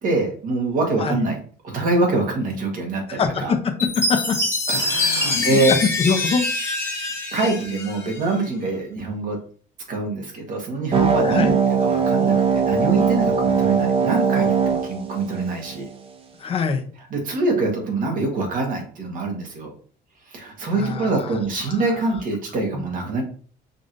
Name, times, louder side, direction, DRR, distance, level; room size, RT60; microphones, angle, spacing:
voice 1, 0.0-1.4 1.6-3.5 4.7-5.7 7.3-9.4 9.9-11.5 11.8-15.9 17.1-19.7 20.3-23.2, right 2 dB, 50° right, 1 dB, 1.4 m, -24 dB
voice 2, 3.2-3.6 3.9-4.4 5.3-6.5 11.2-11.5 16.4-16.8 20.7-21.3 21.7-21.8, left 5 dB, 30° left, 5 dB, 0.6 m, -23 dB
Chime, 3.8-8.4, left 2 dB, 15° left, 1.3 m, -25 dB
sound 1, 10.9-15.9, right 6 dB, 30° right, 0.5 m, -20 dB
5.2 x 3.1 x 2.6 m, 0.43 s
cardioid pair, 160°, 18 cm